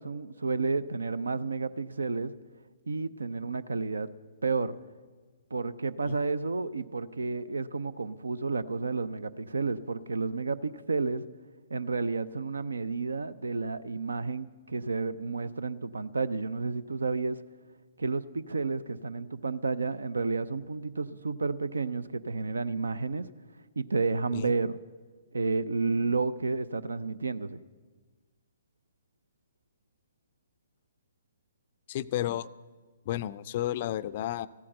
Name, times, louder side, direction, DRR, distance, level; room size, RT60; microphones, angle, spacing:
voice 1, 0.0-2.3 2.9-4.1 4.4-4.7 5.5-11.2 11.7-17.4 18.0-23.3 23.8-24.8 25.3-27.6, right 4 dB, 70° right, 17 dB, 0.5 m, -31 dB
voice 2, 31.9-32.5 33.1-34.5, left 13 dB, 40° left, 17 dB, 0.4 m, -32 dB
15.0 x 8.4 x 7.7 m, 1.4 s
figure-of-eight pair, 120°, 0 cm